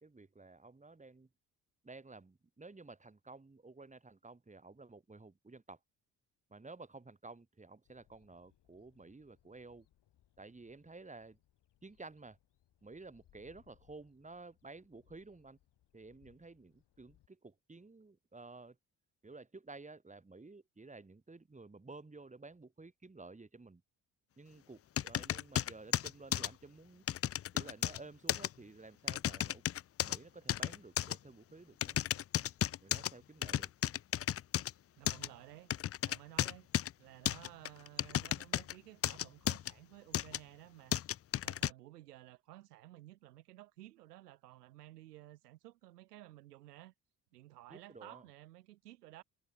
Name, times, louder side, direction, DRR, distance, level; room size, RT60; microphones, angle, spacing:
voice 1, 0.0-1.3 1.8-5.8 6.5-9.9 10.4-11.4 11.8-12.4 12.8-15.6 15.9-18.8 19.2-23.8 24.4-27.0 27.5-29.6 30.0-32.0 32.8-33.7 47.7-48.3, right 3 dB, 15° right, 2.3 m, -53 dB
sound 1, 7.8-17.3, left 12 dB, 60° left, 7.9 m, -71 dB
sound 2, 25.0-26.5 27.1-28.0 28.3-28.5 29.1-30.2 30.5-31.2 31.8-33.1 33.4-34.7 35.1-35.3 35.7-36.9 37.3-38.7 39.0-39.7 40.1-40.4 40.9-41.7, left 11 dB, 30° left, 0.5 m, -34 dB
voice 2, 35.0-35.7 36.0-36.7 37.0-41.0 41.4-46.9 47.3-49.2, right 15 dB, 85° right, 4.9 m, -55 dB
hypercardioid pair, 50°, 46 cm